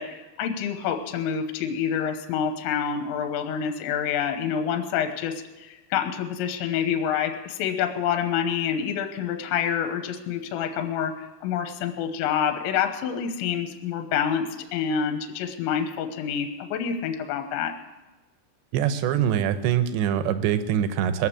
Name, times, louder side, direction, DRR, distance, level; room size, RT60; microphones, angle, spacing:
voice 1, 0.0-17.7, left 8 dB, 75° left, 6 dB, 3.3 m, -27 dB
voice 2, 18.7-21.3, right 9 dB, 75° right, 10 dB, 2.8 m, -24 dB
21.5 x 7.5 x 8.6 m, 1.1 s
omnidirectional pair, 5.6 m